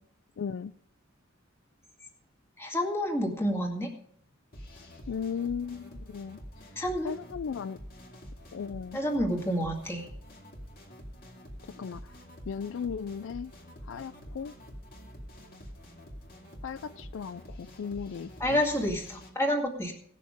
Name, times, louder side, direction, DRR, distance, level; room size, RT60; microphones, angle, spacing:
voice 1, 0.4-0.7 5.1-6.4 7.0-7.8 8.5-9.0 11.7-12.0 12.5-13.5 13.9-14.5 16.6-18.6, left 6 dB, 65° left, 14 dB, 0.4 m, -36 dB
voice 2, 2.6-3.9 6.8-7.1 8.9-10.1 18.4-19.9, equal, 15° left, 0 dB, 2.1 m, -29 dB
sound 1, 4.5-19.3, equal, 45° left, 2.4 m, -47 dB
17.5 x 6.6 x 5.0 m, 0.64 s
head